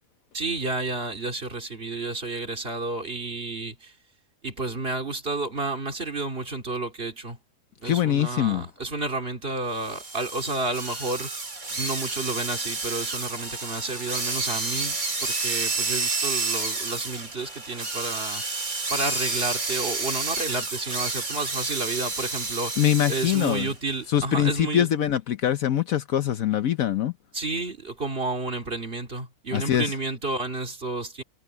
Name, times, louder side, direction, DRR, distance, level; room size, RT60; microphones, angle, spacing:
voice 1, 0.3-3.9 4.4-7.4 7.8-11.3 11.7-18.4 18.9-22.8 23.1-24.9 27.3-31.2, right 2 dB, 35° right, 2.6 m, -31 dB
voice 2, 7.8-8.7 22.8-23.7 24.1-27.1 29.5-29.9, left 11 dB, 65° left, 1.1 m, -23 dB
sound 1, 9.8-23.7, right 3 dB, 60° right, 3.7 m, -30 dB
omnidirectional pair, 1.7 m